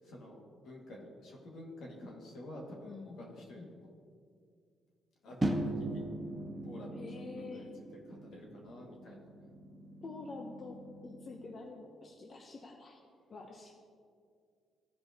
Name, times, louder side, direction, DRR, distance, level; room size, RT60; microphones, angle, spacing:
voice 1, 0.0-3.9 5.2-6.0 6.6-9.3, left 1 dB, 75° left, -2 dB, 1.8 m, -50 dB
voice 2, 2.8-3.3 3.5-3.8 6.9-7.7 10.0-13.0 13.3-13.7, left 3 dB, 40° left, 1 dB, 0.7 m, -47 dB
sound 1, 5.4-11.6, right 1 dB, 20° right, 1.2 m, -40 dB
14.5 x 5.2 x 2.8 m, 2.2 s
cardioid pair, 90°, 0 cm